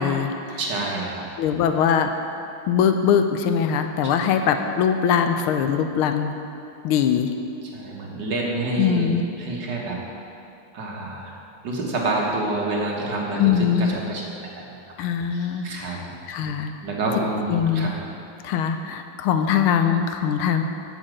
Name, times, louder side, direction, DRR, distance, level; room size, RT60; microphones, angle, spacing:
voice 1, 0.0-0.6 1.4-2.1 2.7-6.3 6.8-7.3 8.8-9.2 13.4-14.0 15.0-16.7 17.5-17.9 18.4-20.6, left 7 dB, 85° left, 7 dB, 1.5 m, -22 dB
voice 2, 0.6-1.3 4.2-4.3 7.7-9.1 9.4-10.0 10.7-11.3 11.6-14.6 15.3-16.0 16.4-16.5 16.8-17.9, right 2 dB, 55° right, -2 dB, 2.0 m, -28 dB
8.3 x 6.4 x 7.7 m, 2.7 s
omnidirectional pair, 2.3 m